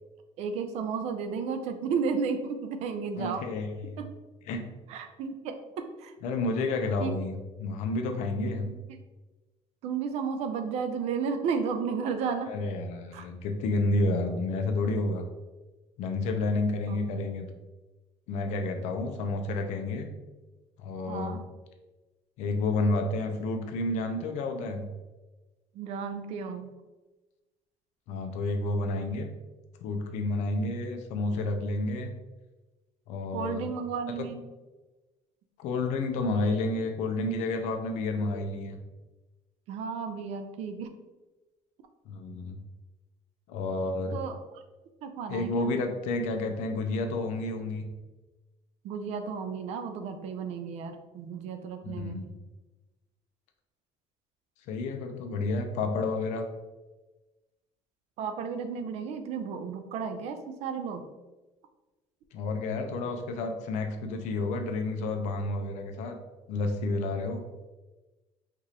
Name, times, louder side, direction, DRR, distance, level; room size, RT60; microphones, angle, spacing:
voice 1, 0.4-3.4 4.0-4.1 4.9-6.1 7.0-7.1 8.7-8.8 9.8-12.5 13.1-13.2 16.9-17.0 21.1-21.4 25.7-26.7 30.6-30.7 33.3-34.4 39.7-40.9 44.1-44.4 45.0-45.7 48.8-52.2 58.2-61.1, right 6 dB, 60° right, 7 dB, 0.4 m, -33 dB
voice 2, 3.2-4.0 4.5-4.7 6.2-7.3 7.6-8.7 12.5-15.2 16.0-17.5 18.3-20.1 20.8-21.4 22.4-24.9 28.1-29.3 29.8-32.1 33.1-33.7 34.1-34.3 35.6-38.8 42.1-42.6 43.5-44.2 45.3-47.9 51.8-52.3 54.7-56.4 62.3-66.2 66.5-67.4, left 2 dB, 70° left, 5 dB, 0.5 m, -30 dB
4.7 x 2.5 x 2.8 m, 1.1 s
cardioid pair, 165°, 12 cm